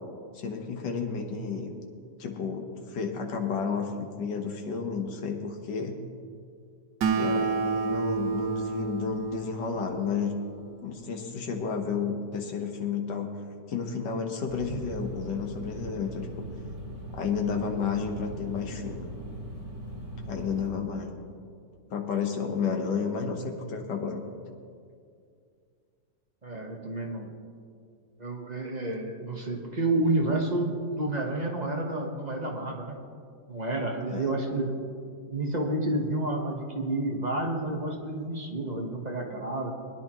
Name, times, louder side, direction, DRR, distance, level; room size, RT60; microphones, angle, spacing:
voice 1, 0.3-1.7 2.2-6.0 7.1-10.3 10.8-13.3 13.7-16.5 17.1-19.1 20.3-21.1 21.9-24.2 34.1-34.3, left 5 dB, 80° left, 3 dB, 1.8 m, -31 dB
Acoustic guitar, 7.0-10.7, right 5 dB, 80° right, 1.5 m, -30 dB
sound 1, 14.5-20.7, equal, 60° right, 3.0 m, -40 dB
voice 2, 26.4-27.3 28.2-33.0 33.5-34.7 35.3-39.7, right 2 dB, 30° right, 0 dB, 1.1 m, -30 dB
21.0 x 10.5 x 3.0 m, 2.3 s
omnidirectional pair, 1.9 m